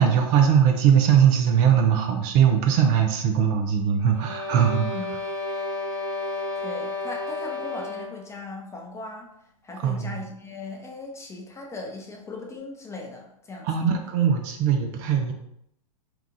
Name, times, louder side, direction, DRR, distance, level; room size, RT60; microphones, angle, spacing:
voice 1, 0.0-4.9 9.8-10.2 13.6-15.3, right 8 dB, 45° right, 4 dB, 0.5 m, -20 dB
sound 1, 4.1-8.3, left 3 dB, 85° right, 1.4 m, -32 dB
voice 2, 6.5-9.3 9.6-13.7, left 3 dB, 15° left, 0 dB, 0.6 m, -38 dB
2.9 x 2.4 x 3.7 m, 0.76 s
hypercardioid pair, 110°, 18 cm